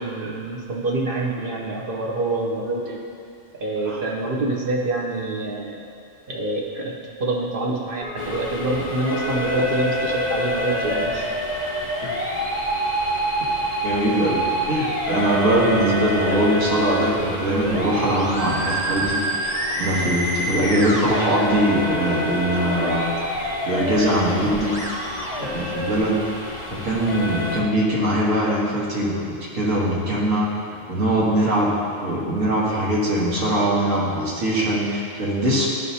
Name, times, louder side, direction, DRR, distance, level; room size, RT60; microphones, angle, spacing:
voice 1, 0.0-3.0 3.5-5.8 6.3-11.3, right 2 dB, 50° right, -1 dB, 0.9 m, -26 dB
Musical instrument, 8.0-26.0, right 1 dB, 5° right, 0.8 m, -28 dB
sound 1, 8.2-27.6, left 2 dB, 35° left, 0.5 m, -31 dB
voice 2, 13.8-23.0 23.4-24.8 25.4-26.2 26.7-31.7 32.0-35.7, right 1 dB, 85° right, -5 dB, 1.7 m, -22 dB
11.0 x 4.9 x 2.7 m, 2.4 s
omnidirectional pair, 1.3 m